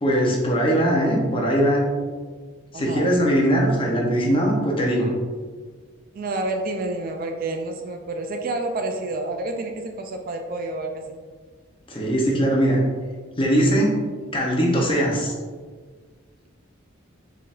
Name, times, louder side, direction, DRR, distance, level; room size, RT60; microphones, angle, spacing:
voice 1, 0.0-1.9 2.7-5.1 11.9-12.8 13.4-14.0 14.3-15.3, equal, 25° left, -2 dB, 0.7 m, -20 dB
voice 2, 2.7-3.1 6.1-11.2, right 2 dB, 45° right, 4 dB, 0.3 m, -29 dB
4.5 x 3.4 x 2.4 m, 1.5 s
head